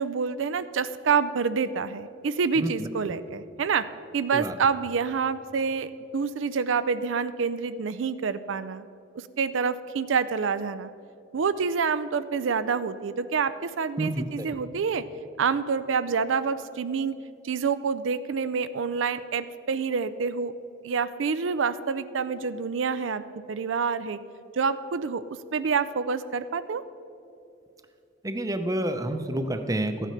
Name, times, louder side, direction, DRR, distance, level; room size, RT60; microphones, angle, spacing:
voice 1, 0.0-3.8 4.1-8.8 9.2-10.9 11.3-15.0 15.4-17.1 17.4-20.5 20.8-23.2 23.5-24.2 24.5-25.2 25.5-26.8, right 5 dB, 85° right, 13 dB, 0.5 m, -27 dB
voice 2, 2.6-2.9 4.3-4.5 14.0-14.5 28.2-30.1, right 1 dB, 20° right, 8 dB, 0.7 m, -29 dB
13.5 x 9.2 x 5.7 m, 2.7 s
head